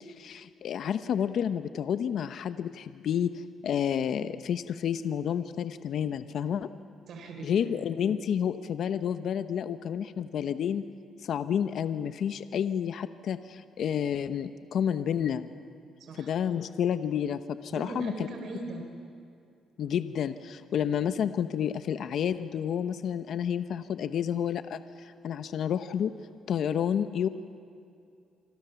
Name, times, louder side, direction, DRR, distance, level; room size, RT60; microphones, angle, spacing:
voice 1, 0.0-6.7 7.4-10.8 11.2-15.5 16.2-18.1 19.8-26.1 26.5-27.3, left 8 dB, 65° left, 11 dB, 0.9 m, -30 dB
voice 2, 7.1-7.7 16.0-16.3 17.7-18.8, right 3 dB, 65° right, 4 dB, 4.0 m, -39 dB
27.5 x 25.5 x 7.0 m, 2.5 s
cardioid pair, 90°, 0 cm